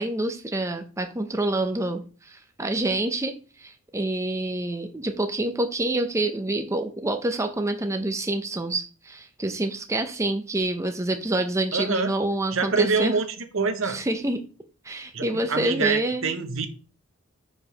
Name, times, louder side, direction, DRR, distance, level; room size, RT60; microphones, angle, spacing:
voice 1, 0.0-13.1 13.8-14.4 14.8-16.3, right 2 dB, 15° right, 0.6 m, -27 dB
voice 2, 11.7-12.1 12.5-13.3 13.5-14.0 15.1-16.7, right 4 dB, 70° right, 1.0 m, -25 dB
4.8 x 4.7 x 5.4 m
head